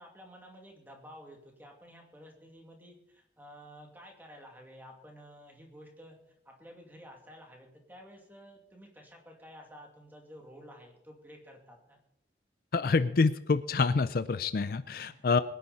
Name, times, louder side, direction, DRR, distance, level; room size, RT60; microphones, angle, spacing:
voice 1, 0.0-6.2 6.4-12.0 15.0-15.4, equal, 10° right, 1 dB, 2.4 m, -52 dB
voice 2, 12.7-15.4, left 4 dB, 50° left, 13 dB, 0.4 m, -27 dB
22.5 x 10.0 x 4.2 m, 0.80 s
head